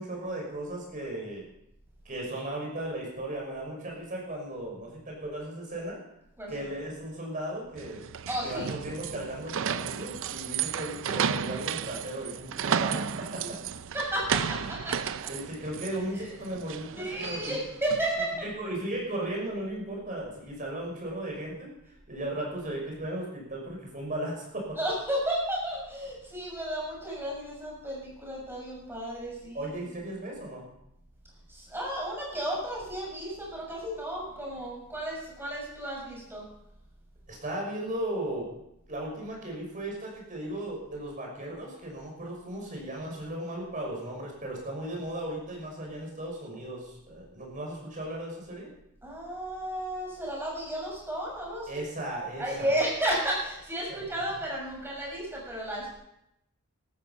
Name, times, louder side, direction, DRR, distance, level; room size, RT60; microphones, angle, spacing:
voice 1, 0.0-1.4 2.0-6.0 6.5-8.0 8.4-13.6 15.3-17.6 18.4-21.7 22.1-24.8 29.5-30.6 37.3-38.5 38.9-48.7 51.7-52.7 53.9-54.0, right 1 dB, 35° right, -1 dB, 6.0 m, -36 dB
sound 1, 7.8-18.2, right 7 dB, 60° right, 0.5 m, -33 dB
voice 2, 8.3-8.7 13.9-14.9 15.2-15.3 16.1-16.3 17.0-18.3 24.8-29.7 31.5-36.5 49.0-51.8 52.4-55.9, right 1 dB, 10° right, -3 dB, 6.8 m, -33 dB
14.5 x 13.0 x 5.7 m, 0.81 s
head